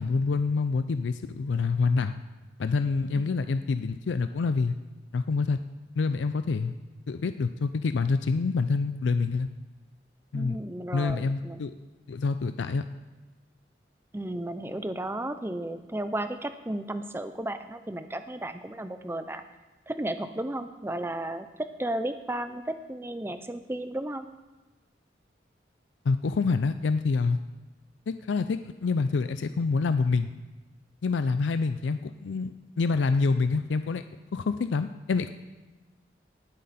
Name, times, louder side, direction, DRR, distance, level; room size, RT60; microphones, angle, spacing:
voice 1, 0.0-2.1 2.6-4.8 5.1-5.6 6.0-6.7 7.1-9.5 10.3-10.6 10.9-11.7 12.1-12.8 26.1-27.4 28.1-30.3 31.0-34.0 34.3-35.3, left 4 dB, 85° left, 10 dB, 0.4 m, -27 dB
voice 2, 3.1-3.6 10.3-11.6 14.1-19.4 19.9-24.3, right 1 dB, 15° right, 10 dB, 0.5 m, -34 dB
18.5 x 7.6 x 4.2 m, 1.2 s
head